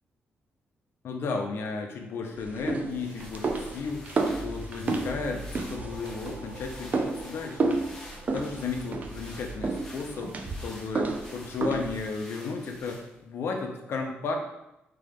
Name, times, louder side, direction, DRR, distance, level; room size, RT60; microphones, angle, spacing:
voice 1, 1.0-7.8 8.3-10.4 10.6-14.3, left 4 dB, 65° left, 3 dB, 0.7 m, -34 dB
sound 1, 2.4-12.1, right 3 dB, 35° right, 0.4 m, -32 dB
sound 2, 2.7-13.3, left 1 dB, 10° left, 0.7 m, -49 dB
sound 3, 5.5-10.0, equal, 20° right, 1.5 m, -51 dB
3.8 x 3.4 x 3.5 m, 0.90 s
wide cardioid pair, 145°, 4 cm